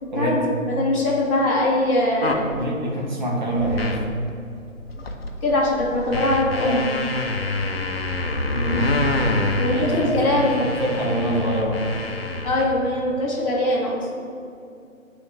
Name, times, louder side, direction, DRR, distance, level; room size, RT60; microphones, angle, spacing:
voice 1, 0.0-2.5 3.6-3.7 5.4-7.0 9.6-10.7 12.4-14.2, left 1 dB, 25° left, -7 dB, 1.0 m, -22 dB
sound 1, 2.2-2.6 3.5-4.1 4.5-4.6 4.9-12.6, left 2 dB, 45° left, 0.6 m, -27 dB
voice 2, 2.6-4.0 8.5-9.3 9.7-12.0, right 1 dB, 35° right, -2 dB, 1.2 m, -25 dB
9.4 x 3.4 x 3.4 m, 2.6 s
figure-of-eight pair, 150°, 42 cm